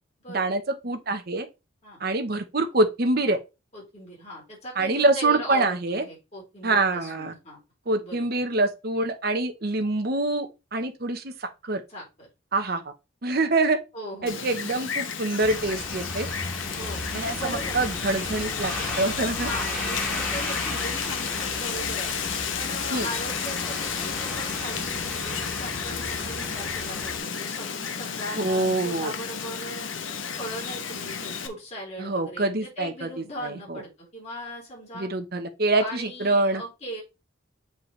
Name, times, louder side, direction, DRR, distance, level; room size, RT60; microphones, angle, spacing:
voice 1, 0.3-1.5 2.0-3.4 4.8-6.0 6.6-7.3 7.9-11.8 12.5-12.8 13.2-13.8 14.2-16.3 17.1-19.5 22.9-23.1 28.4-29.1 32.0-33.8 34.9-36.6, right 2 dB, 55° right, 1.0 m, -25 dB
voice 2, 3.7-7.6 8.0-8.4 11.9-12.3 12.6-12.8 13.9-14.5 16.8-17.8 19.3-22.1 22.5-29.9 30.4-35.1 35.8-37.0, equal, 35° left, 4.1 m, -39 dB
Wind, 14.3-31.5, left 6 dB, 85° left, 0.9 m, -32 dB
sound 1, 15.4-27.2, left 1 dB, 10° left, 2.6 m, -35 dB
7.9 x 4.6 x 3.3 m
head